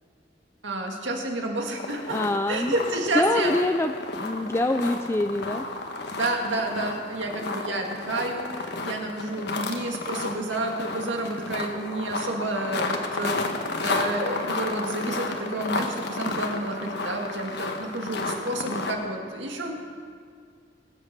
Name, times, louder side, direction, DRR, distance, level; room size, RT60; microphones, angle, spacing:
voice 1, 0.6-2.2 2.5-3.5 6.1-19.7, right 2 dB, 80° right, 2 dB, 2.2 m, -30 dB
sound 1, 1.8-18.9, left 3 dB, 65° left, 1.4 m, -32 dB
voice 2, 2.1-2.7 3.1-5.7, left 2 dB, 15° left, 7 dB, 0.4 m, -25 dB
21.0 x 8.1 x 6.7 m, 2.1 s
head